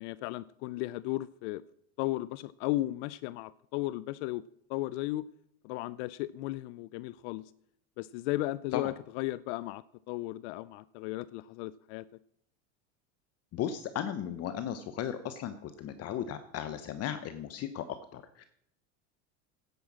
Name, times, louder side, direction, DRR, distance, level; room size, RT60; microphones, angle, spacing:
voice 1, 0.0-1.6 2.0-4.4 4.7-5.2 5.6-7.4 8.0-12.0, left 17 dB, 65° left, 19 dB, 0.5 m, -35 dB
voice 2, 13.5-17.9 18.1-18.4, left 10 dB, 45° left, 11 dB, 0.9 m, -36 dB
10.5 x 9.3 x 7.4 m, 0.72 s
supercardioid pair, 115°, 36 cm